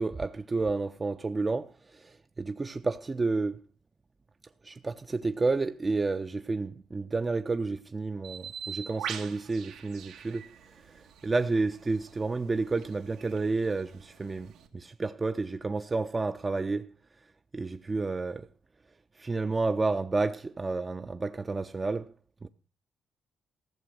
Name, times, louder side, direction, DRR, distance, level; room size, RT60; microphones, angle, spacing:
voice 1, 0.0-3.6 4.6-10.5 11.2-16.9 17.5-18.5 19.2-22.1 22.4-22.5, right 3 dB, 25° right, 0.6 m, -30 dB
Bird, 8.2-14.7, right 8 dB, 90° right, 1.8 m, -44 dB
15.0 x 6.7 x 6.3 m
cardioid pair, 90°, 0 cm